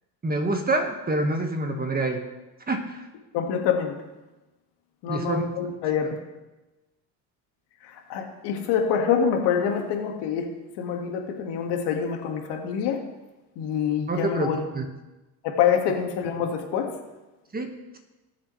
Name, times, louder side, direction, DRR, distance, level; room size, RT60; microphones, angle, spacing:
voice 1, 0.2-2.2 2.7-3.1 5.1-5.4 14.1-14.8 17.5-18.0, right 2 dB, 20° right, 4 dB, 1.6 m, -27 dB
voice 2, 3.3-4.0 5.0-6.2 7.8-10.5 10.8-13.0 13.6-14.6 15.4-16.9, left 7 dB, 70° left, 3 dB, 2.0 m, -26 dB
19.0 x 7.3 x 3.3 m, 1.1 s
supercardioid pair, 90°, 43 cm